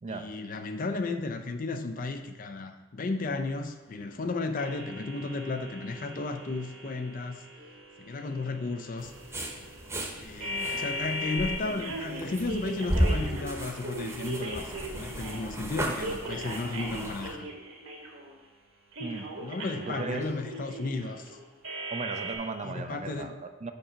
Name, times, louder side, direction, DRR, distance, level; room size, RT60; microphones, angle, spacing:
voice 1, 0.1-7.4 8.0-9.1 10.2-17.5 19.4-21.4 22.6-23.4, left 3 dB, 40° left, 7 dB, 0.5 m, -34 dB
sound 1, 4.5-15.5 16.0-18.4 18.9-22.3, equal, 70° right, 1.4 m, -39 dB
sound 2, 9.0-17.3, equal, 15° right, 0.9 m, -34 dB
voice 2, 19.8-20.3 21.9-23.7, right 4 dB, 35° right, 7 dB, 0.4 m, -36 dB
5.3 x 4.9 x 5.7 m, 1.2 s
head